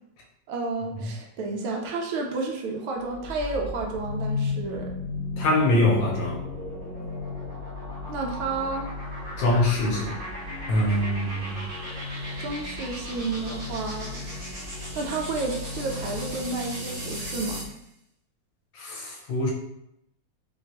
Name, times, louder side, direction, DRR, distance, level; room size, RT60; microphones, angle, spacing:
voice 1, 0.5-4.9 8.1-8.8 12.4-14.2 15.0-17.6, right 3 dB, 75° right, 1 dB, 1.4 m, -31 dB
sound 1, 3.0-17.8, left 2 dB, 60° right, 2.3 m, -34 dB
voice 2, 5.4-6.4 9.4-10.1 10.7-11.6 18.8-19.5, left 1 dB, 70° left, 0 dB, 1.4 m, -23 dB
5.5 x 2.8 x 2.9 m, 0.80 s
omnidirectional pair, 2.4 m